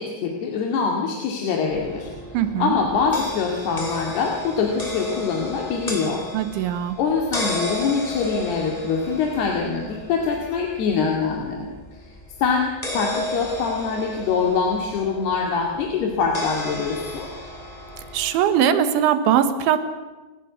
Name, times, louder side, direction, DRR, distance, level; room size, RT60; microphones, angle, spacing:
voice 1, 0.0-2.1 2.6-6.2 7.0-12.0 12.4-17.3, left 5 dB, 65° left, 1 dB, 4.1 m, -24 dB
sound 1, 1.7-18.3, left 1 dB, 10° left, 3.2 m, -34 dB
voice 2, 2.3-2.8 6.3-7.0 18.1-19.8, right 9 dB, 85° right, 10 dB, 3.9 m, -20 dB
29.5 x 14.0 x 9.5 m, 1.2 s
omnidirectional pair, 5.3 m